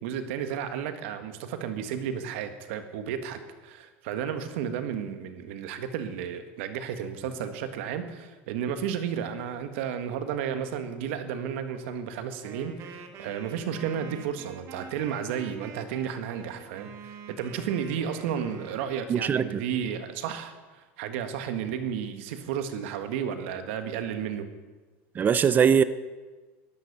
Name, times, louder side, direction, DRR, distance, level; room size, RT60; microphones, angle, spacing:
voice 1, 0.0-24.5, right 8 dB, 75° right, 1.5 m, -33 dB
Wind instrument woodwind instrument, 12.4-19.1, right 5 dB, 45° right, 1.6 m, -45 dB
voice 2, 19.1-19.6 25.2-25.8, right 7 dB, 25° right, 0.6 m, -21 dB
11.5 x 11.5 x 6.7 m
supercardioid pair, 130°, 7 cm